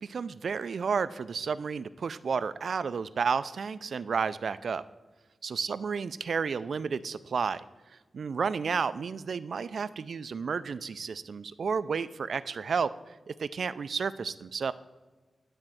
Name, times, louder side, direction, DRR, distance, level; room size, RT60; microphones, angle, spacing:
voice 1, 0.0-4.8 5.4-7.6 8.1-13.0 13.3-14.7, right 5 dB, 65° right, 15 dB, 0.4 m, -31 dB
12.0 x 4.4 x 7.6 m, 1.2 s
wide cardioid pair, 160°, 0 cm